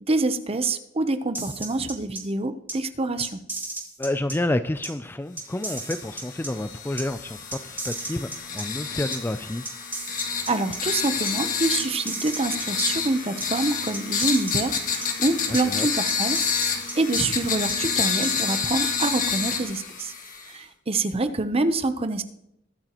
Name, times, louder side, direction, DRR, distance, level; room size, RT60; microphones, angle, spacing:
voice 1, 0.1-3.4 10.5-16.4 17.0-20.1 20.5-22.2, right 2 dB, 30° right, 10 dB, 0.8 m, -26 dB
sound 1, 1.3-2.2 2.7-2.8 3.2-4.4 4.8-4.9 5.4-6.5 7.0-7.1 7.5-8.6 9.1-9.2 9.7-10.8 11.3-11.4 11.8-12.9 13.4-13.5 13.9-15.1 15.5-15.6 16.1-17.7 18.2-18.3, right 2 dB, 10° right, 2.1 m, -34 dB
voice 2, 4.0-9.6 15.5-15.9, left 1 dB, 10° left, 11 dB, 0.4 m, -29 dB
sound 2, 5.6-20.5, left 6 dB, 45° left, 1.8 m, -29 dB
21.5 x 8.8 x 3.0 m, 0.78 s
head